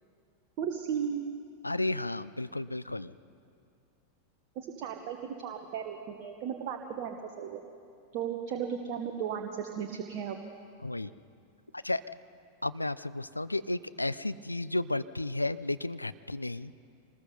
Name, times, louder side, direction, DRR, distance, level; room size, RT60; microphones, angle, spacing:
voice 1, 0.6-1.3 4.5-7.6 8.1-10.4, right 8 dB, 45° right, 4 dB, 1.4 m, -35 dB
voice 2, 1.6-3.1 10.8-11.1 11.7-12.0 12.6-16.7, left 2 dB, 85° left, 14 dB, 0.5 m, -33 dB
26.0 x 20.0 x 5.4 m, 2.4 s
figure-of-eight pair, 90°, 0 cm